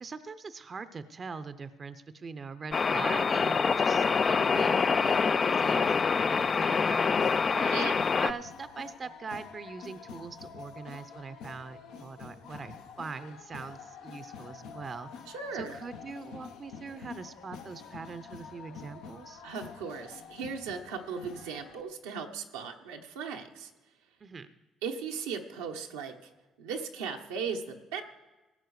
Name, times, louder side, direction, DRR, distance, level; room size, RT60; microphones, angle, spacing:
voice 1, 0.0-7.9 8.2-15.2 15.5-19.4 24.2-24.5, right 4 dB, 40° right, 12 dB, 0.6 m, -42 dB
sound 1, 2.7-8.3, left 5 dB, 45° left, 0.4 m, -26 dB
sound 2, 3.9-21.8, left 6 dB, 80° left, 1.0 m, -47 dB
voice 2, 7.5-8.0 15.3-15.8 19.4-23.7 24.8-26.1 26.6-28.0, right 6 dB, 90° right, 2 dB, 1.0 m, -37 dB
17.5 x 7.6 x 4.8 m, 1.2 s
hypercardioid pair, 55°, 0 cm